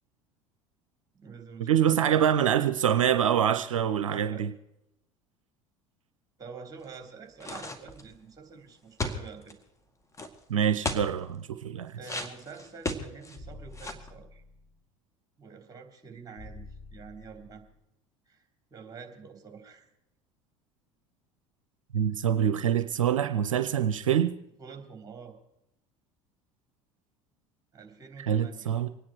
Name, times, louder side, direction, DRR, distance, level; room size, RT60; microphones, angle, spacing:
voice 1, 1.1-2.2 2.9-3.4 3.7-4.4 6.4-9.5 12.0-14.4 15.4-17.6 18.3-19.9 24.6-25.4 27.7-28.7, right 5 dB, 20° right, 4 dB, 3.2 m, -47 dB
voice 2, 1.7-4.5 10.5-11.9 21.9-24.3 28.2-28.9, right 9 dB, 80° right, 10 dB, 0.6 m, -25 dB
sound 1, 7.4-8.1 9.0-9.5 10.1-10.3 10.8-11.1 12.0-13.4 13.7-14.1, left 2 dB, 20° left, 2.0 m, -34 dB
sound 2, 13.4-14.8 16.4-17.8, left 2 dB, 50° left, 4.0 m, -48 dB
25.0 x 9.9 x 4.7 m, 0.84 s
figure-of-eight pair, 70°, 17 cm